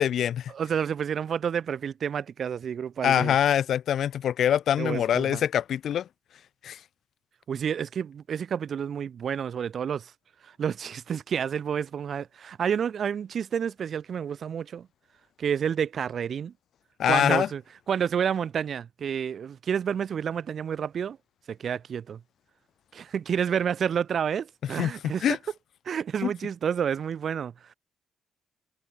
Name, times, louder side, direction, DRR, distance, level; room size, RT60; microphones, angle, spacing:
voice 1, 0.0-0.5 3.0-6.1 6.6-6.8 17.0-17.5 24.8-24.9 25.2-25.4 26.2-26.3, left 10 dB, 65° left, 2.8 m, -24 dB
voice 2, 0.5-3.4 4.8-5.4 7.5-10.1 10.4-14.9 15.4-16.5 17.1-17.6 17.9-21.2 21.5-22.2 22.9-25.3 25.8-27.7, right 8 dB, 55° right, 5.0 m, -29 dB
cardioid pair, 90°, 0 cm